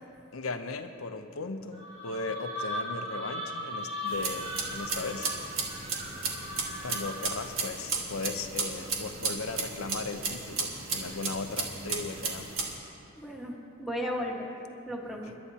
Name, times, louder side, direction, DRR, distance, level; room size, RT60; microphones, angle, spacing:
voice 1, 0.3-5.6 6.8-12.7, left 3 dB, 90° left, 8 dB, 0.8 m, -37 dB
sound 1, 1.7-7.4, equal, 30° right, 3.6 m, -38 dB
sound 2, 4.1-12.7, right 4 dB, 65° right, 1.7 m, -34 dB
voice 2, 13.2-14.6 14.9-15.3, equal, ahead, -2 dB, 1.5 m, -35 dB
25.5 x 11.5 x 2.9 m, 2.6 s
head